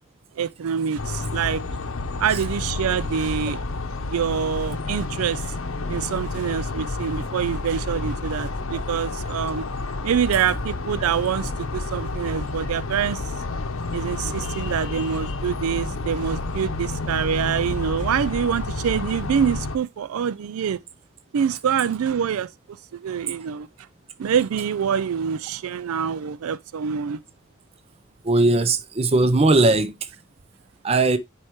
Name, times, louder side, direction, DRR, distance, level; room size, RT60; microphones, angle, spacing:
voice 1, 0.4-1.6 2.2-3.6 4.1-5.6 5.9-9.6 10.0-13.2 13.9-20.8 21.3-22.5 22.9-23.7 24.2-27.2, right 7 dB, 85° right, 0.4 m, -25 dB
sound 1, 1.0-19.8, left 3 dB, 70° left, 0.8 m, -30 dB
voice 2, 28.2-29.9 30.8-31.2, right 2 dB, 30° right, 0.5 m, -18 dB
9.6 x 4.5 x 3.0 m
head